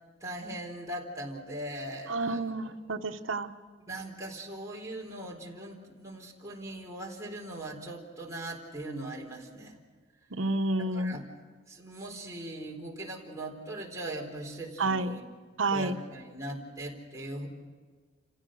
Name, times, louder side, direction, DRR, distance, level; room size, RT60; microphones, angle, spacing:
voice 1, 0.2-2.8 3.9-9.8 10.3-10.4 10.9-11.2 11.7-15.2 15.7-17.5, right 1 dB, 15° right, -2 dB, 4.0 m, -40 dB
voice 2, 2.1-3.5 10.3-11.2 14.8-15.1 15.6-15.9, right 2 dB, 90° right, 7 dB, 1.3 m, -29 dB
29.0 x 16.0 x 6.5 m, 1.5 s
head